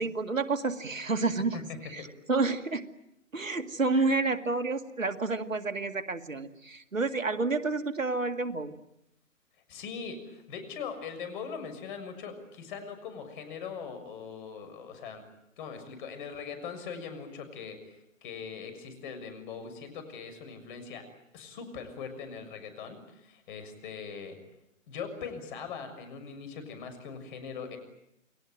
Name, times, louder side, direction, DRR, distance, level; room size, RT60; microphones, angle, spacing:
voice 1, 0.0-1.6 1.9-2.0 2.3-2.9 3.3-8.7, right 3 dB, 80° right, 9 dB, 2.2 m, -29 dB
voice 2, 9.7-15.2 15.6-21.0 21.3-24.4 24.9-27.8, left 6 dB, 40° left, 8 dB, 6.7 m, -41 dB
29.5 x 21.0 x 9.2 m, 0.81 s
figure-of-eight pair, 125°, 39 cm